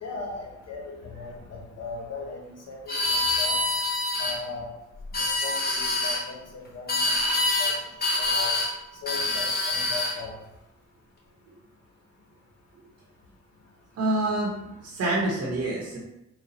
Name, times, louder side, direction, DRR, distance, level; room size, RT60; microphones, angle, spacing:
voice 1, 0.0-3.6 4.2-4.7 5.2-7.7 8.2-8.6 9.0-10.3, left 4 dB, 55° left, -1 dB, 1.1 m, -38 dB
sound 1, 2.9-4.4 5.0-6.2 6.9-7.8 8.0-8.7 9.1-10.2, left 2 dB, 30° left, 1.3 m, -26 dB
voice 2, 14.0-14.5 14.8-16.0, right 2 dB, 55° right, -4 dB, 1.0 m, -26 dB
4.1 x 2.3 x 4.0 m, 0.89 s
cardioid pair, 90°, 30 cm